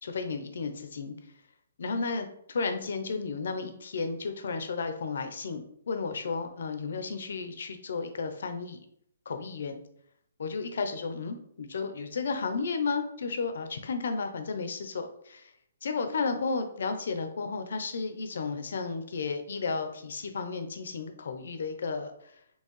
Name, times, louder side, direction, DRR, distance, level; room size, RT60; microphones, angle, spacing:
voice 1, 0.0-1.1 1.8-8.8 9.3-9.7 10.4-15.5 15.8-22.3, left 4 dB, 65° left, 7 dB, 0.6 m, -33 dB
4.5 x 2.8 x 3.1 m, 0.69 s
hypercardioid pair, 170°, 0 cm